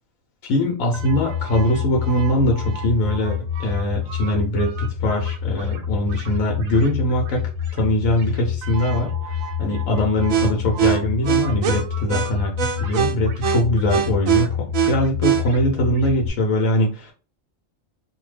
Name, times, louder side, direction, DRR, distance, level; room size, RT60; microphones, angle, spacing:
voice 1, 0.4-17.1, left 1 dB, 80° left, 0 dB, 1.1 m, -22 dB
sound 1, 0.9-16.3, equal, 80° right, 1.0 m, -25 dB
2.7 x 2.1 x 3.2 m, 0.36 s
omnidirectional pair, 1.4 m